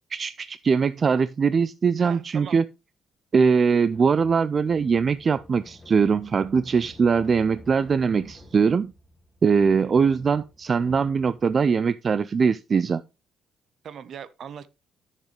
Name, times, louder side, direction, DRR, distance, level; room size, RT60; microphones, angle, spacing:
voice 1, 0.1-2.6 3.3-8.9 9.4-13.0, right 5 dB, 45° right, 0.3 m, -21 dB
voice 2, 2.0-2.6 9.7-9.9 13.8-14.7, right 8 dB, 60° right, 0.7 m, -40 dB
sound 1, 3.9-11.6, left 1 dB, 25° left, 1.9 m, -49 dB
10.5 x 6.6 x 3.3 m
cardioid pair, 90°, 0 cm